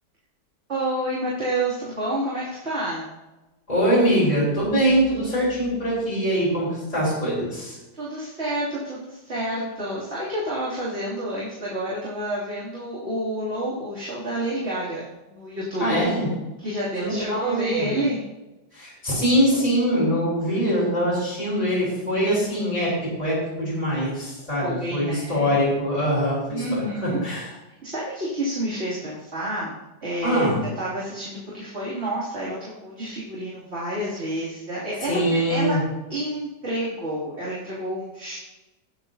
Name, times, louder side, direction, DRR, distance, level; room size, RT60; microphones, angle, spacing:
voice 1, 0.7-3.1 7.9-16.0 16.6-18.2 24.6-25.5 26.5-27.2 27.8-29.7 30.0-30.5 30.8-35.7 36.1-38.4, right 1 dB, 35° right, -8 dB, 3.2 m, -29 dB
voice 2, 3.7-7.8 15.8-16.3 17.0-18.0 18.7-22.9 23.2-27.5 30.2-30.6 35.1-35.8, equal, 20° left, -10 dB, 5.0 m, -23 dB
18.5 x 8.9 x 2.8 m, 1.1 s
omnidirectional pair, 1.9 m